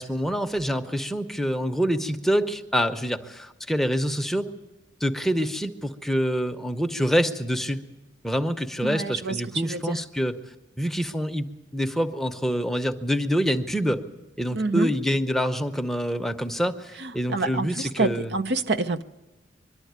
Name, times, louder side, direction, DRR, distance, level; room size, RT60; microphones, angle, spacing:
voice 1, 0.0-4.5 5.0-7.8 8.2-10.3 10.8-14.0 14.4-18.3, equal, ahead, 0.8 m, -26 dB
voice 2, 8.8-9.4 9.6-10.0 14.5-14.9 17.0-19.0, right 3 dB, 60° right, 0.7 m, -27 dB
23.5 x 12.5 x 9.4 m
head